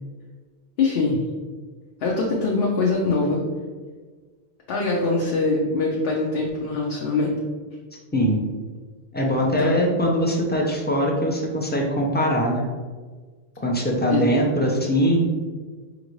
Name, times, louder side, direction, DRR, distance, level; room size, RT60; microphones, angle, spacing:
voice 1, 0.8-1.2 2.0-3.4 4.7-7.3 9.6-9.7 14.1-14.2, left 3 dB, 70° left, -3 dB, 0.8 m, -23 dB
voice 2, 8.1-8.4 9.1-12.7 13.6-15.3, equal, 15° left, -1 dB, 0.3 m, -22 dB
4.9 x 2.6 x 3.0 m, 1.4 s
omnidirectional pair, 1.1 m